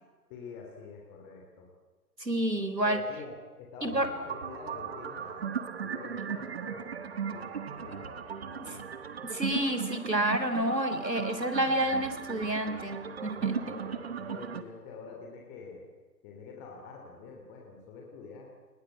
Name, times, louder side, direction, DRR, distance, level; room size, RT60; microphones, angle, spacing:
voice 1, 0.3-1.6 2.8-8.2 8.4-8.8 13.3-15.9 16.2-18.5, left 4 dB, 15° left, 0 dB, 3.2 m, -46 dB
voice 2, 2.2-3.0 3.8-4.1 8.6-8.8 9.2-13.8, right 1 dB, 90° right, 10 dB, 3.9 m, -29 dB
sound 1, 3.8-14.6, right 7 dB, 40° right, 1.5 m, -37 dB
29.0 x 20.5 x 8.2 m, 1.3 s
figure-of-eight pair, 140°, 48 cm